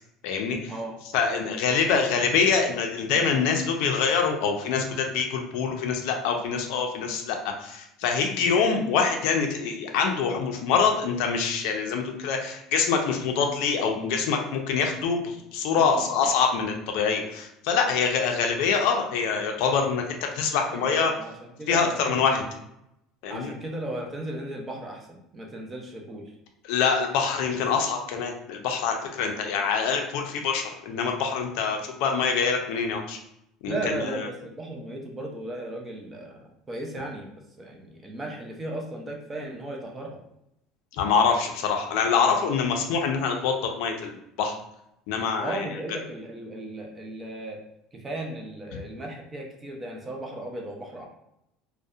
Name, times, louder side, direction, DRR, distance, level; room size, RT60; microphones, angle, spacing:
voice 1, 0.2-0.7 1.1-21.1 21.7-22.4 23.2-23.5 26.7-33.2 33.6-34.2 41.0-44.6 45.1-45.7 48.7-48.8, left 5 dB, 60° left, 3 dB, 0.4 m, -25 dB
voice 2, 15.7-16.3 20.7-22.5 23.3-26.3 33.6-37.3 37.6-40.2 45.4-47.6 47.9-51.1, right 1 dB, 15° right, 0 dB, 0.3 m, -36 dB
2.6 x 2.1 x 2.3 m, 0.81 s
cardioid pair, 175°, 0 cm